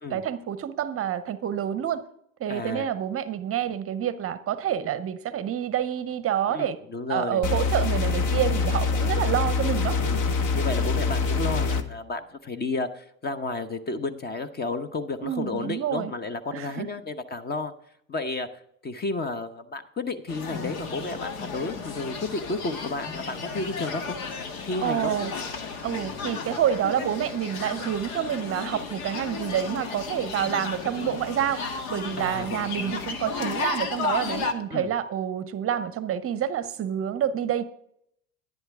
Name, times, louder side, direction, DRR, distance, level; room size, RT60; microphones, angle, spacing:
voice 1, 0.1-2.0 2.4-6.8 7.1-10.0 15.2-16.1 16.5-16.9 24.8-25.3 25.8-31.6 31.9-37.6, right 10 dB, 35° right, 14 dB, 0.7 m, -28 dB
voice 2, 2.5-2.9 6.5-7.4 10.0-17.7 18.1-18.5 18.8-24.2 24.6-25.3 32.2-33.0 34.7-34.9, left 3 dB, 25° left, 11 dB, 0.9 m, -32 dB
sound 1, 7.4-11.8, left 4 dB, 45° left, 1.3 m, -25 dB
sound 2, 20.3-34.5, left 5 dB, 75° left, 1.6 m, -34 dB
11.0 x 10.5 x 3.6 m, 0.72 s
hypercardioid pair, 85°, 42 cm